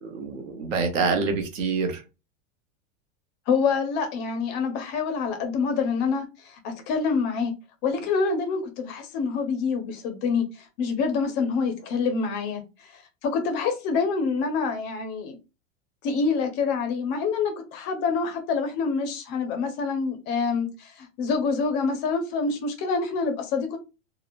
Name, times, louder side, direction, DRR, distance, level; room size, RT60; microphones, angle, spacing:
voice 1, 0.0-2.0, right 4 dB, 90° right, 1.0 m, -26 dB
voice 2, 3.5-7.5 7.8-12.6 12.9-15.4 16.0-23.8, left 5 dB, 30° left, 0.4 m, -26 dB
2.9 x 2.0 x 2.4 m
supercardioid pair, 140°, 38 cm